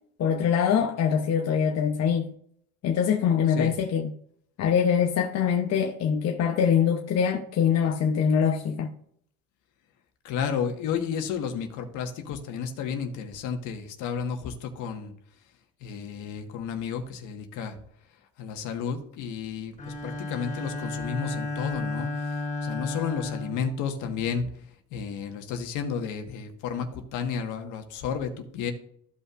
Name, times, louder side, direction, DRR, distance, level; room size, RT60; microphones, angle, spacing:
voice 1, 0.2-2.3 2.8-4.1 4.6-8.9, left 7 dB, 50° left, 0.9 m, -23 dB
voice 2, 10.2-15.1 15.8-17.8 18.4-24.5 24.9-28.7, left 6 dB, 70° left, 1.6 m, -32 dB
Bowed string instrument, 19.8-24.4, left 3 dB, 25° left, 3.2 m, -33 dB
14.5 x 5.5 x 2.5 m
supercardioid pair, 95°, 32 cm